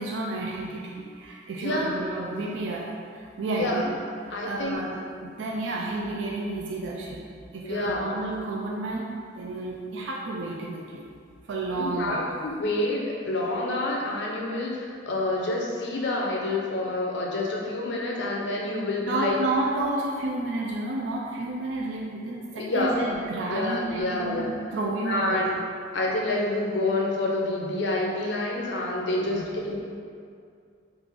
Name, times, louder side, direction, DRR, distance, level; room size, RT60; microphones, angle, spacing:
voice 1, 0.0-2.9 3.1-3.9 4.2-7.3 7.5-11.0 11.5-12.3 19.0-25.5 29.3-29.5, right 2 dB, 70° right, -3 dB, 0.4 m, -31 dB
voice 2, 1.5-2.0 3.5-3.8 4.3-4.8 7.6-8.0 11.7-19.4 22.5-23.0 23.5-24.5 25.1-25.6 25.9-29.8, left 2 dB, 65° left, -2 dB, 0.5 m, -28 dB
3.2 x 2.4 x 3.5 m, 2.3 s
head